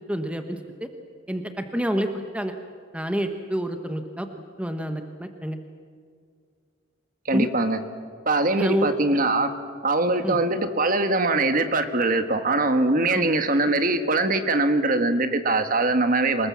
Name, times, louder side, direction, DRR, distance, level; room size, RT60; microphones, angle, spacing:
voice 1, 0.1-0.9 1.3-2.5 2.9-4.3 4.6-5.6 7.3-7.5 8.6-8.9 10.2-10.4 13.1-13.3, equal, 5° right, 6 dB, 1.1 m, -28 dB
voice 2, 7.2-7.8 8.2-9.5 9.8-16.5, right 2 dB, 45° right, 9 dB, 1.4 m, -22 dB
26.5 x 19.5 x 7.3 m, 2.1 s
head